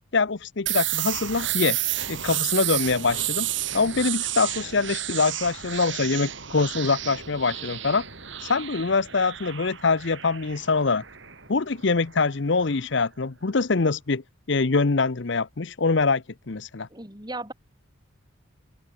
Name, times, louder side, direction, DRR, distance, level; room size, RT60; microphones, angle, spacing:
voice 1, 0.1-1.8 2.1-3.5 3.7-8.0 8.4-11.0 11.5-14.2 14.5-16.9, left 4 dB, 55° left, 0.8 m, -24 dB
sound 1, 0.7-12.3, right 13 dB, 60° right, 5.7 m, -31 dB
voice 2, 16.9-17.5, right 2 dB, 20° right, 5.2 m, -36 dB
open air
head